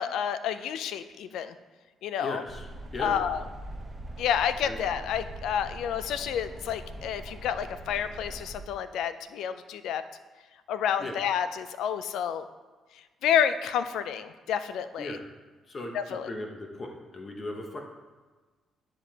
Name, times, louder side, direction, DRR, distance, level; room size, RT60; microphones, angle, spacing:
voice 1, 0.0-1.5 2.0-2.4 3.0-3.4 4.2-10.0 10.7-12.5 13.2-15.2 15.9-16.3, left 8 dB, 85° left, 11 dB, 0.4 m, -29 dB
voice 2, 2.2-2.7 2.9-3.2 4.6-4.8 11.0-11.2 15.0-15.3 15.7-17.8, left 1 dB, 35° left, 2 dB, 0.9 m, -37 dB
sound 1, 2.5-8.6, right 1 dB, 25° right, 0.8 m, -42 dB
9.6 x 5.1 x 2.9 m, 1.3 s
cardioid pair, 90°, 0 cm